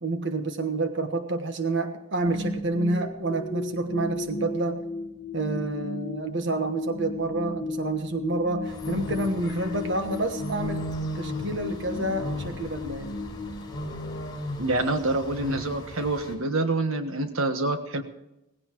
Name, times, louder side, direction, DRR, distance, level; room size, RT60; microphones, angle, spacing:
voice 1, 0.0-4.8 5.3-10.9 11.1-13.2, right 2 dB, 55° right, 7 dB, 1.3 m, -28 dB
sound 1, 2.3-14.4, left 2 dB, 50° left, 1.3 m, -36 dB
sound 2, 8.6-16.3, equal, 20° left, 4.0 m, -36 dB
voice 2, 14.6-18.0, right 2 dB, 75° right, 8 dB, 1.3 m, -26 dB
18.5 x 16.5 x 3.1 m, 0.90 s
head